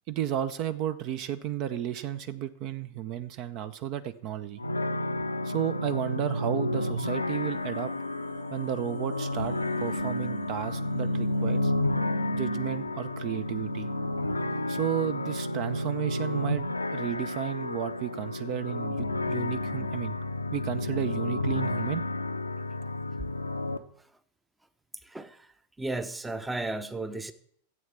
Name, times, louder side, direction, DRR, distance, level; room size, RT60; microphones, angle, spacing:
voice 1, 0.1-4.6 5.4-7.9 8.5-9.5 9.8-11.7 12.3-13.9 14.7-20.2 20.5-22.0, right 11 dB, 40° right, 13 dB, 0.7 m, -33 dB
sound 1, 4.6-23.8, left 1 dB, 80° left, 0.7 m, -31 dB
sound 2, 7.2-15.7 16.0-16.1, right 4 dB, 75° right, 2.9 m, -48 dB
voice 2, 25.0-25.5 25.8-27.3, right 2 dB, 10° right, 12 dB, 0.8 m, -34 dB
12.5 x 8.1 x 7.3 m, 0.66 s
figure-of-eight pair, 90°, 0 cm